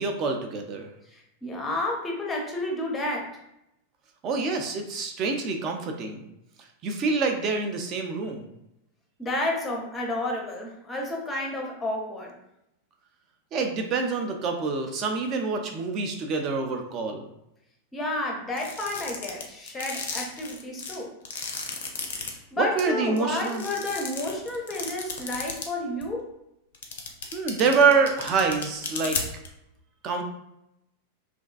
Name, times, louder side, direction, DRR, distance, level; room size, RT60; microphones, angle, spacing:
voice 1, 0.0-0.9 4.2-6.2 6.8-8.4 13.5-17.2 22.6-23.6 27.3-29.2 30.0-30.2, right 4 dB, 35° right, 4 dB, 0.4 m, -26 dB
voice 2, 1.1-3.3 9.2-12.3 17.9-21.1 22.3-26.3, left 1 dB, 15° left, 0 dB, 0.6 m, -31 dB
sound 1, 18.6-22.3 22.8-22.9 23.2-25.7 26.0-26.1 26.7-29.5, left 5 dB, 60° left, 0.4 m, -33 dB
2.5 x 2.2 x 2.3 m, 0.84 s
figure-of-eight pair, 90°, 0 cm